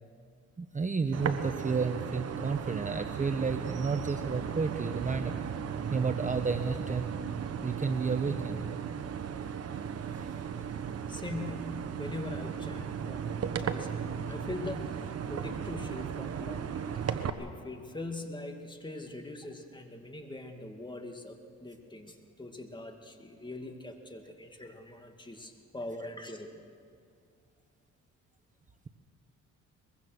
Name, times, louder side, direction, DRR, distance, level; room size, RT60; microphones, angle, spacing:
voice 1, 0.6-5.3 5.9-7.1 7.6-8.6 10.1-10.2, right 4 dB, 25° right, 7 dB, 1.1 m, -31 dB
sound 1, 1.1-17.3, right 7 dB, 55° right, 1.3 m, -36 dB
voice 2, 11.1-26.6, left 2 dB, 15° left, 4 dB, 2.4 m, -42 dB
23.0 x 22.0 x 6.3 m, 2.4 s
cardioid pair, 90°, 30 cm